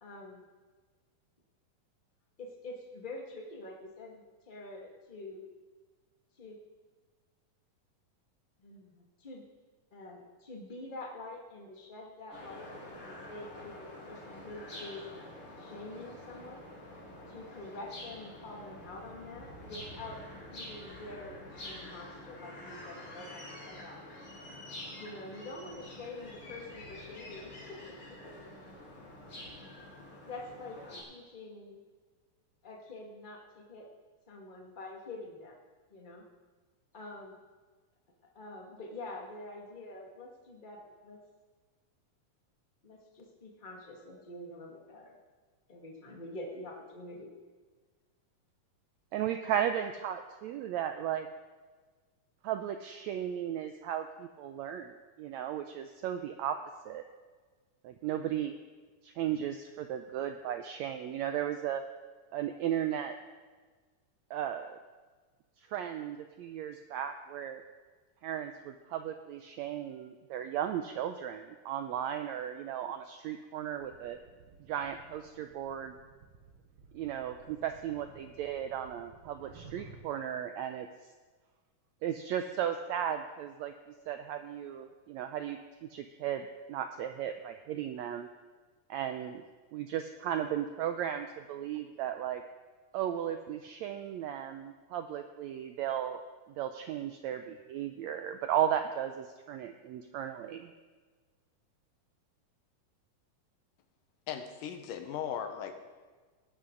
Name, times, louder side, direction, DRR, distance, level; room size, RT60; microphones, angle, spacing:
voice 1, 0.0-0.4 2.4-5.4 6.4-6.6 8.6-9.4 9.9-15.0 15.6-16.6 17.3-20.2 20.5-24.0 24.9-28.2 29.0-29.1 29.4-29.8 30.3-30.8 31.1-31.8 32.6-33.9 34.3-35.5 35.9-36.3 36.9-37.4 38.3-41.2 42.8-45.2 45.7-47.3, left 2 dB, 20° left, -1 dB, 1.3 m, -46 dB
sound 1, 12.3-31.0, left 1 dB, 40° left, 4.0 m, -47 dB
voice 2, 49.1-51.3 52.4-56.6 56.8-57.0 57.8-58.6 59.0-61.8 62.3-63.2 64.3-64.8 65.6-67.6 68.2-74.2 74.7-76.0 76.9-80.9 82.0-83.7 84.1-85.6 85.9-88.3 88.9-89.4 89.7-92.4 92.9-96.2 96.6-100.7, right 10 dB, 90° right, 7 dB, 1.6 m, -35 dB
sound 2, 73.8-80.0, right 5 dB, 65° right, 1.8 m, -55 dB
voice 3, 104.3-105.7, left 8 dB, 80° left, 7 dB, 2.7 m, -37 dB
18.0 x 11.5 x 3.9 m, 1.4 s
omnidirectional pair, 3.8 m